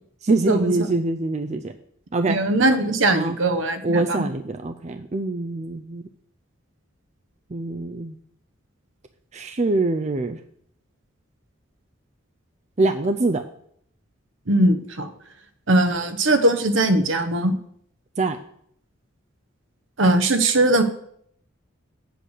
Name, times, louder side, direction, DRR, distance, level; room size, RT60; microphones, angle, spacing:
voice 1, 0.2-1.7 2.1-2.4 3.1-3.4 3.8-6.0 7.5-8.2 9.3-10.4 12.8-13.4 18.2-18.4, right 2 dB, 35° right, 6 dB, 0.5 m, -24 dB
voice 2, 2.3-4.2 14.5-15.1 15.7-17.6 20.0-20.8, right 1 dB, 65° right, 8 dB, 1.1 m, -20 dB
8.1 x 7.8 x 6.6 m, 0.67 s
head